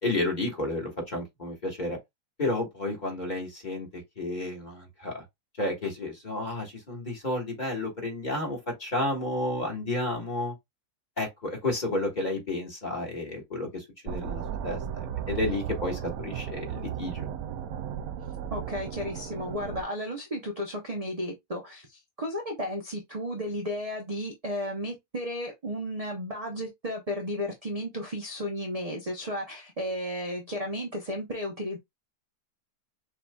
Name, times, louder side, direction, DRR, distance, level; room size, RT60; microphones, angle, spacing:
voice 1, 0.0-2.0 2.4-5.2 5.6-10.5 11.2-17.3, left 2 dB, 30° left, 1.7 m, -31 dB
sound 1, 14.1-19.8, right 9 dB, 70° right, 1.0 m, -35 dB
voice 2, 18.5-31.8, equal, 30° right, 0.7 m, -34 dB
6.5 x 2.9 x 2.3 m
omnidirectional pair, 1.7 m